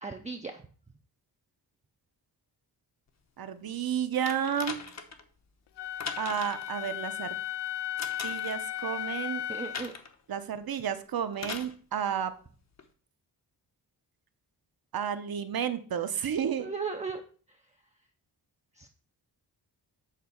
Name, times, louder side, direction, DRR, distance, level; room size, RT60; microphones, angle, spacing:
voice 1, 0.0-0.6 9.5-9.9 16.6-17.2 18.8-18.9, right 4 dB, 15° right, 3 dB, 0.5 m, -36 dB
voice 2, 3.4-4.8 6.2-7.4 8.2-9.4 10.3-12.3 14.9-16.7, right 8 dB, 60° right, 10 dB, 0.9 m, -31 dB
sound 1, 4.3-5.2 6.0-6.7 8.0-8.6 9.7-10.1 11.4-11.7 12.8-12.9, left 5 dB, 40° left, 0.9 m, -39 dB
Wind instrument woodwind instrument, 5.8-9.9, left 11 dB, 85° left, 0.6 m, -35 dB
8.5 x 4.0 x 6.9 m, 0.42 s
wide cardioid pair, 160°, 41 cm